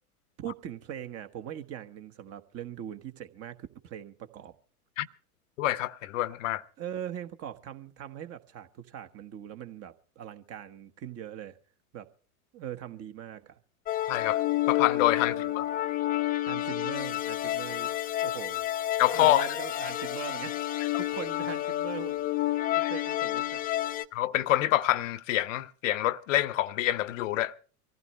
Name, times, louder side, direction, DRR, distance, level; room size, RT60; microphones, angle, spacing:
voice 1, 0.4-4.5 6.8-11.6 11.9-12.1 12.5-13.6 15.2-15.6 16.4-17.9 18.2-18.7 19.1-20.6 20.8-22.1 22.9-23.4, right 10 dB, 35° right, 1.3 m, -41 dB
voice 2, 5.6-6.6 14.1-14.4 14.7-15.6 19.0-19.5 22.8-22.9 24.1-27.5, left 15 dB, 60° left, 0.8 m, -26 dB
sound 1, 13.9-24.0, left 14 dB, 20° left, 0.7 m, -30 dB
25.0 x 15.0 x 3.2 m
hypercardioid pair, 100°, 45 cm